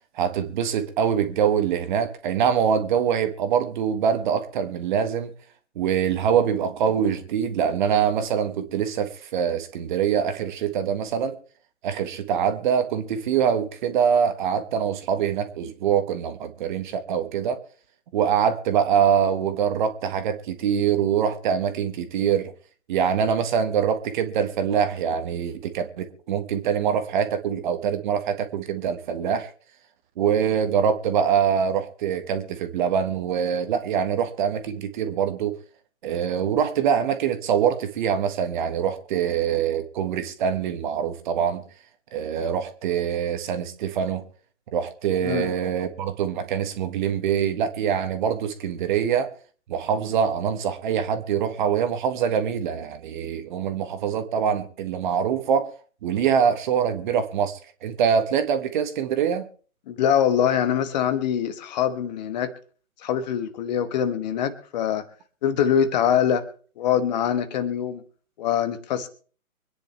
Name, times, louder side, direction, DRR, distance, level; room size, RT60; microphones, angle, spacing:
voice 1, 0.1-5.3 5.7-11.4 11.8-17.6 18.1-22.5 22.9-29.5 30.2-35.5 36.0-41.6 42.1-44.2 44.7-49.3 49.7-55.7 56.0-59.5, right 8 dB, 35° right, 9 dB, 1.7 m, -24 dB
voice 2, 59.9-62.5 63.0-65.0 65.4-66.4 66.8-68.0 68.4-69.1, left 9 dB, 30° left, 10 dB, 1.3 m, -23 dB
25.0 x 10.0 x 3.3 m, 0.43 s
figure-of-eight pair, 135°, 42 cm